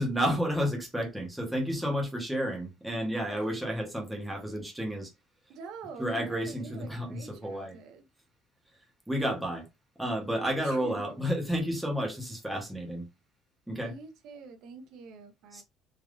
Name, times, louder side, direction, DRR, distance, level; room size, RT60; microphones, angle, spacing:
voice 1, 0.0-5.1 6.0-7.8 9.1-9.7 10.0-13.1 13.7-13.9 15.5-15.6, equal, 5° right, 0.8 m, -31 dB
voice 2, 5.5-8.0 10.4-11.0 13.8-15.6, right 4 dB, 65° right, 0.8 m, -46 dB
3.4 x 2.4 x 2.4 m
cardioid pair, 155°, 0 cm